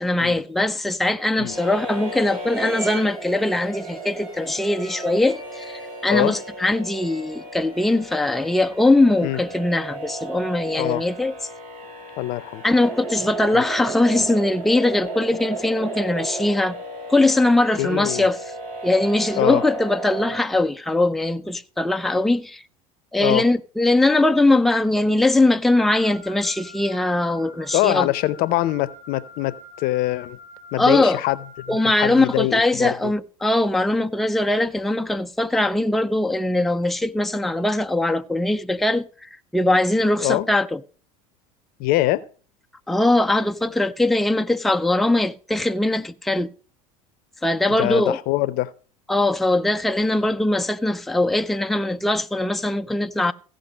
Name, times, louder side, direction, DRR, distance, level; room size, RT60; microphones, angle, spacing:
voice 1, 0.0-11.3 12.6-16.8 17.1-18.4 18.8-22.6 23.1-28.1 30.8-31.2 31.7-40.8 42.9-46.5 47.4-48.2 49.1-53.3, left 2 dB, ahead, 0.5 m, -21 dB
sound 1, 1.3-9.5, right 3 dB, 85° right, 2.9 m, -45 dB
sound 2, 1.4-20.4, right 2 dB, 50° right, 6.9 m, -34 dB
voice 2, 10.7-11.0 12.2-12.6 13.5-13.6 17.8-18.3 19.4-19.6 23.2-23.4 27.7-30.4 30.7-31.4 31.6-33.1 40.2-40.5 41.8-42.2 47.8-48.7, left 17 dB, 55° left, 0.7 m, -23 dB
Wind instrument woodwind instrument, 25.9-32.4, left 1 dB, 35° right, 3.8 m, -45 dB
15.5 x 5.2 x 5.0 m
hypercardioid pair, 80°, 19 cm